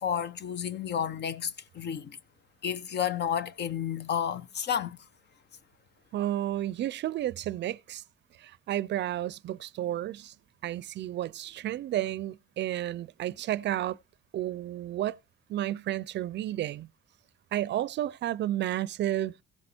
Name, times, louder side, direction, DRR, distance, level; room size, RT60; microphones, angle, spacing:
voice 1, 0.0-2.2 2.6-5.0, left 8 dB, 60° left, 0.8 m, -31 dB
voice 2, 6.1-8.0 8.4-10.3 10.6-14.0 14.3-15.2 15.5-16.9 17.5-19.3, right 13 dB, 65° right, 0.4 m, -32 dB
16.0 x 5.3 x 4.3 m
cardioid pair, 90°, 20 cm